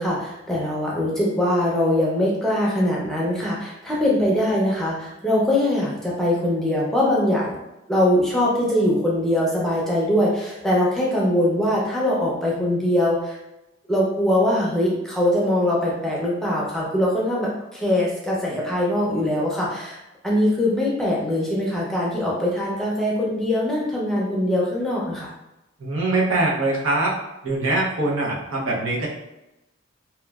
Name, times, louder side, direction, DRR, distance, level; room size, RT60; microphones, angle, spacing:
voice 1, 0.0-7.6 7.9-13.4 13.9-20.0 20.2-25.3, left 1 dB, ahead, -5 dB, 0.5 m, -22 dB
voice 2, 25.8-27.2 27.4-29.1, right 2 dB, 85° right, -4 dB, 0.7 m, -23 dB
3.0 x 2.2 x 2.3 m, 0.92 s
head